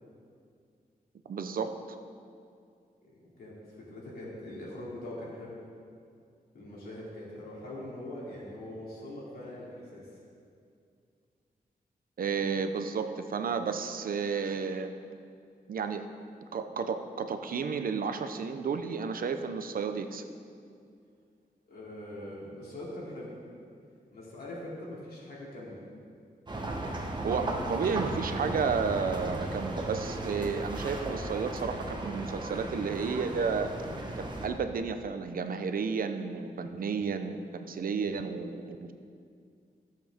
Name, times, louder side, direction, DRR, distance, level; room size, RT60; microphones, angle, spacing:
voice 1, 1.3-1.7 12.2-14.9 15.7-16.0 16.5-20.2 27.2-33.7 34.2-38.9, right 5 dB, 65° right, 8 dB, 0.6 m, -32 dB
voice 2, 3.0-5.5 6.5-10.1 21.7-23.3 24.1-25.8, left 1 dB, 80° left, -6 dB, 3.0 m, -42 dB
sound 1, 26.5-34.5, right 2 dB, 30° right, 1.2 m, -35 dB
15.0 x 7.6 x 3.6 m, 2.3 s
wide cardioid pair, 125°, 16 cm